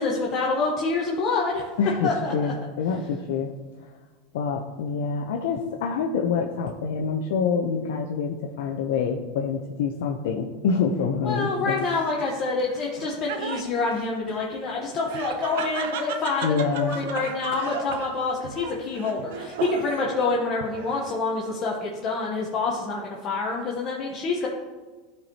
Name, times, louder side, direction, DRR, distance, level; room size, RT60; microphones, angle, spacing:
voice 1, 0.0-1.7 2.0-2.5 11.2-24.5, left 3 dB, 35° left, -2 dB, 1.0 m, -27 dB
voice 2, 1.8-3.5 4.3-11.9 16.4-17.0, left 5 dB, 80° left, 1 dB, 0.6 m, -26 dB
Laughter, 11.8-20.2 20.6-21.3, right 7 dB, 75° right, 0.7 m, -36 dB
13.5 x 4.5 x 2.8 m, 1.3 s
supercardioid pair, 155°, 0 cm